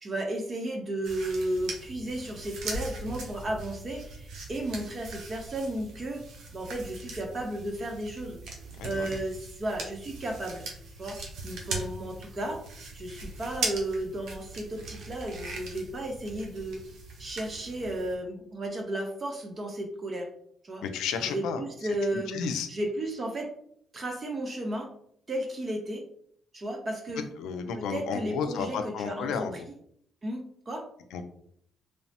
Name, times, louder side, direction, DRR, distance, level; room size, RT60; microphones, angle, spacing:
voice 1, 0.0-6.2 6.5-8.4 8.8-10.7 11.0-12.7 12.9-16.8 17.2-20.3 20.6-20.8 21.2-22.4 22.7-23.6 23.9-24.9 25.3-26.0 26.5-27.3 27.7-29.5 30.2-30.9, right 1 dB, 40° right, 3 dB, 0.7 m, -34 dB
sound 1, 1.0-18.1, right 3 dB, 80° right, 0.6 m, -40 dB
voice 2, 20.8-21.6 22.1-22.7 27.4-29.7 31.1-31.2, left 6 dB, 90° left, 7 dB, 0.3 m, -32 dB
3.1 x 2.0 x 2.7 m, 0.65 s
cardioid pair, 90°, 0 cm